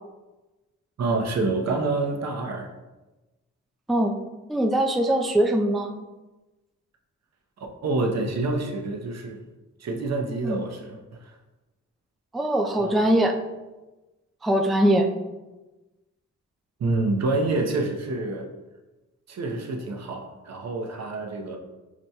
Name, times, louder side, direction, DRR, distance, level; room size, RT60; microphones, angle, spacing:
voice 1, 1.0-2.7 7.8-9.4 9.8-11.3 12.8-13.0 16.8-18.5 19.3-21.6, right 2 dB, 60° right, 2 dB, 0.7 m, -27 dB
voice 2, 4.5-6.0 10.4-10.6 12.3-13.3 14.4-15.1, right 1 dB, ahead, 2 dB, 0.3 m, -21 dB
5.9 x 2.2 x 2.8 m, 1.1 s
cardioid pair, 55°, 31 cm